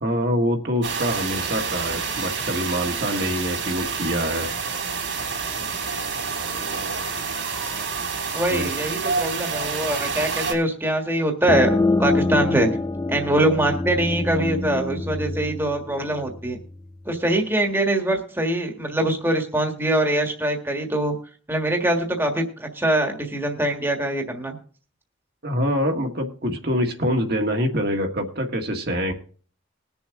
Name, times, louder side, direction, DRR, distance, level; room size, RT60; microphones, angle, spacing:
voice 1, 0.0-4.5 8.5-8.7 25.4-29.1, equal, 50° right, 2 dB, 1.6 m, -25 dB
sound 1, 0.8-10.5, right 5 dB, 75° right, 3.3 m, -28 dB
voice 2, 8.3-12.7 13.1-16.6 17.0-21.1 21.5-24.6, right 1 dB, 10° right, 2 dB, 1.6 m, -23 dB
sound 2, 11.5-16.9, left 2 dB, 20° left, 0.4 m, -25 dB
21.0 x 7.0 x 3.7 m, 0.42 s
head